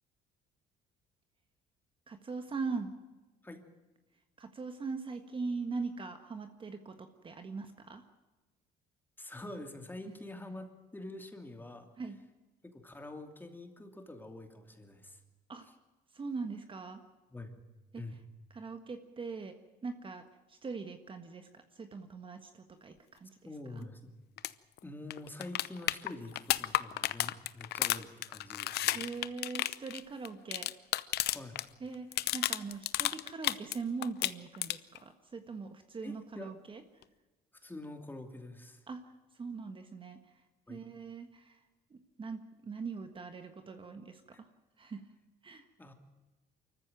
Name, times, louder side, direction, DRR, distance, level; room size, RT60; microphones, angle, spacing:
voice 1, 2.1-2.9 4.4-8.0 12.0-12.2 15.5-15.7 16.1-17.0 17.9-18.0 18.5-19.6 19.8-23.4 23.7-23.9 28.9-30.7 31.8-36.8 38.9-39.0 39.4-40.2 40.7-41.6 41.9-44.5 44.8-45.0 45.4-45.6, right 4 dB, 30° right, 7 dB, 1.6 m, -41 dB
voice 2, 9.2-11.9 12.6-15.2 17.3-17.6 17.9-18.2 23.4-24.1 24.8-29.0 31.3-31.6 36.0-36.5 37.6-38.8 40.7-40.8 44.3-44.4 45.8-45.9, left 2 dB, 10° left, 5 dB, 2.8 m, -46 dB
sound 1, 24.4-24.5 24.8-24.9 25.1-31.7 31.9-33.8 34.0-35.0 37.0-37.1, left 15 dB, 75° left, 0.7 m, -32 dB
25.0 x 14.5 x 9.2 m, 1.2 s
cardioid pair, 110°, 17 cm